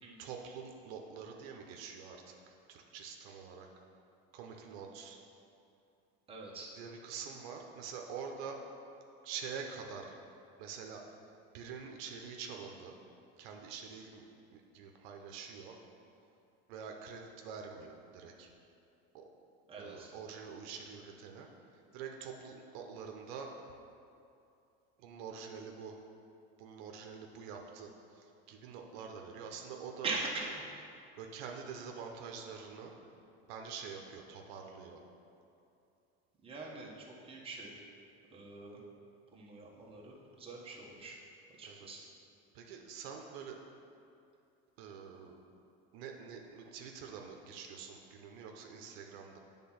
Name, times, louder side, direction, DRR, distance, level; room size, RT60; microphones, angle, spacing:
voice 1, 0.2-3.7 4.3-5.2 6.7-8.6 9.2-10.1 10.6-11.0 11.5-13.0 13.4-14.3 14.5-15.8 16.7-18.5 19.1-19.2 19.8-21.5 21.9-23.5 25.0-26.0 26.6-30.1 31.2-32.9 33.5-35.0 41.7-42.1 42.5-43.6 44.8-45.4 45.9-49.4, right 6 dB, 70° right, 2 dB, 0.8 m, -46 dB
voice 2, 6.3-6.7 19.7-20.1 30.0-30.8 36.4-37.8 38.3-38.8 39.3-41.2 41.6-42.0, right 3 dB, 20° right, -3 dB, 1.1 m, -42 dB
8.3 x 3.6 x 5.7 m, 2.6 s
supercardioid pair, 130°, 30 cm